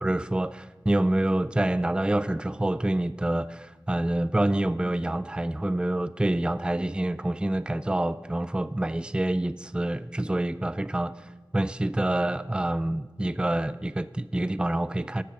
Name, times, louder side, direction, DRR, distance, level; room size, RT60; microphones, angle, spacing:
voice 1, 0.0-15.2, right 1 dB, 10° right, 15 dB, 0.4 m, -27 dB
13.5 x 10.5 x 6.4 m, 1.3 s
wide cardioid pair, 70°, 8 cm